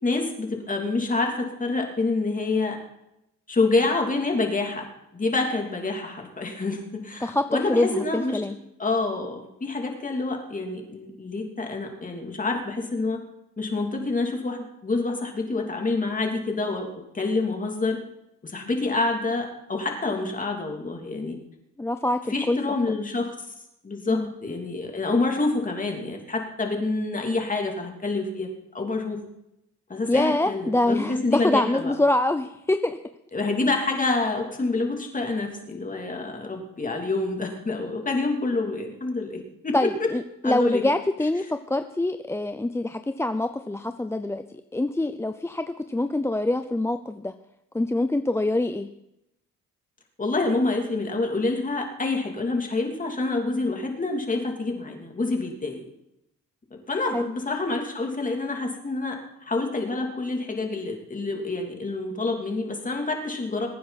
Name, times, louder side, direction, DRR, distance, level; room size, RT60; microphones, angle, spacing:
voice 1, 0.0-2.8 3.5-4.9 5.1-8.4 8.8-13.2 13.6-18.0 18.4-21.4 22.3-23.5 23.8-29.2 29.9-31.9 33.3-39.9 40.4-40.9 50.2-55.8 56.9-63.7, left 3 dB, 25° left, 2 dB, 2.9 m, -27 dB
voice 2, 7.2-8.6 21.8-22.6 24.1-24.3 30.1-33.0 39.7-44.4 44.7-47.3 47.7-48.9 57.1-57.3, left 2 dB, 10° left, 8 dB, 0.5 m, -25 dB
22.0 x 9.4 x 4.2 m, 0.84 s
cardioid pair, 90°, 30 cm